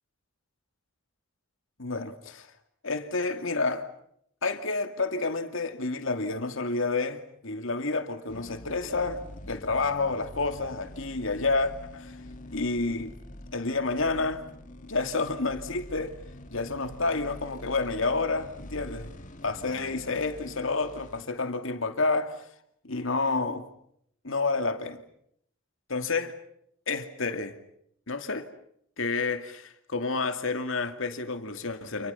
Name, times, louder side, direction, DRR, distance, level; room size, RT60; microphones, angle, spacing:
voice 1, 1.8-2.5 2.8-3.9 4.4-12.2 12.5-13.2 13.5-14.4 14.9-16.1 16.5-19.1 19.4-22.5 22.8-23.7 24.2-25.0 25.9-26.4 26.9-27.6 28.1-28.5 29.0-32.1, left 3 dB, 65° left, 2.5 m, -29 dB
sound 1, 8.3-21.2, left 1 dB, 35° left, 2.1 m, -45 dB
30.0 x 28.5 x 5.7 m
head